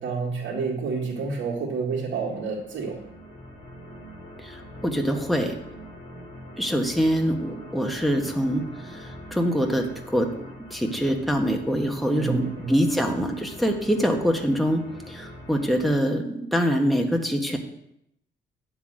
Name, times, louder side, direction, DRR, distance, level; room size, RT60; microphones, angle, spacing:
voice 1, 0.0-3.0 12.1-12.8, right 4 dB, 70° right, -3 dB, 2.1 m, -29 dB
sound 1, 2.3-16.0, equal, 25° left, 3.3 m, -43 dB
voice 2, 4.4-5.6 6.6-10.4 10.7-17.6, equal, ahead, 2 dB, 1.4 m, -24 dB
9.6 x 4.0 x 7.4 m, 0.80 s
cardioid pair, 90°, 20 cm